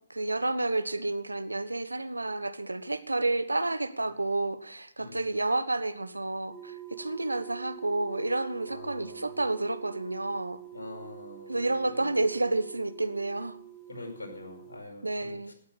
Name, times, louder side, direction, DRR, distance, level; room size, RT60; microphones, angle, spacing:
voice 1, 0.1-10.6 11.5-13.6 15.0-15.5, right 2 dB, 85° right, 1.2 m, -30 dB
sound 1, 6.5-14.8, right 12 dB, 5° left, 2.9 m, -47 dB
voice 2, 8.7-9.4 10.7-12.1 13.9-15.5, left 2 dB, 75° left, 5.3 m, -44 dB
17.5 x 8.9 x 7.2 m
figure-of-eight pair, 130°, 0 cm